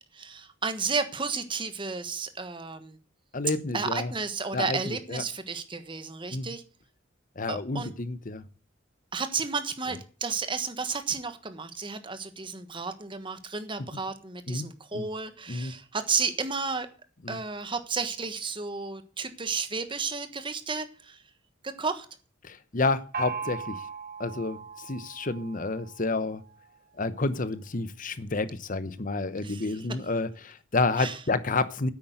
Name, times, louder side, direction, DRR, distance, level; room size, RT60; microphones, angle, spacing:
voice 1, 0.1-3.0 3.7-6.6 7.5-7.9 9.1-16.9 17.3-21.2 21.6-22.1 29.4-29.8 31.0-31.2, right 4 dB, 25° right, 10 dB, 1.3 m, -32 dB
voice 2, 3.3-4.1 4.5-5.2 6.3-6.5 7.4-8.4 14.5-14.7 14.9-15.1 15.5-15.7 17.2-17.4 22.4-23.8 24.2-26.4 27.0-31.9, left 3 dB, 45° left, 14 dB, 0.9 m, -30 dB
Gong, 23.1-26.7, right 5 dB, 45° right, 1.9 m, -39 dB
9.7 x 8.5 x 7.9 m, 0.39 s
head